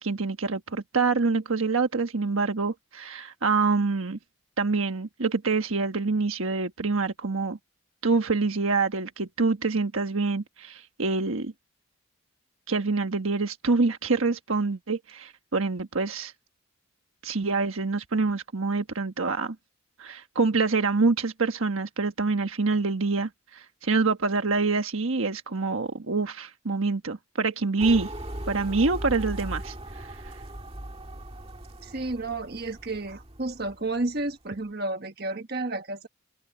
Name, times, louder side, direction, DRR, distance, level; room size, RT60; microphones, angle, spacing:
voice 1, 0.0-4.2 4.6-7.6 8.0-11.5 12.7-16.3 17.2-19.6 20.0-28.1 28.5-30.3, right 4 dB, 75° right, 1.3 m, -26 dB
sound 1, 27.8-34.3, right 1 dB, 25° right, 1.9 m, -39 dB
voice 2, 31.8-36.1, right 2 dB, 45° right, 1.4 m, -31 dB
open air
head